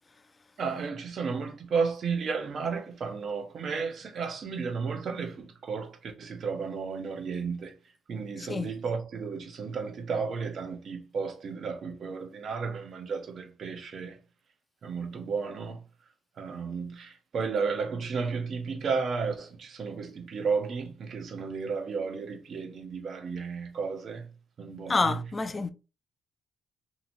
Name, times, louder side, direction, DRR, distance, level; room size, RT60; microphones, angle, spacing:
voice 1, 0.6-7.7 8.1-14.2 14.8-15.8 16.4-24.3 24.6-25.2, right 5 dB, 55° right, 0.8 m, -33 dB
voice 2, 8.4-8.7 24.9-25.7, left 3 dB, 30° left, 0.4 m, -28 dB
2.8 x 2.7 x 2.6 m
cardioid pair, 90°, 0 cm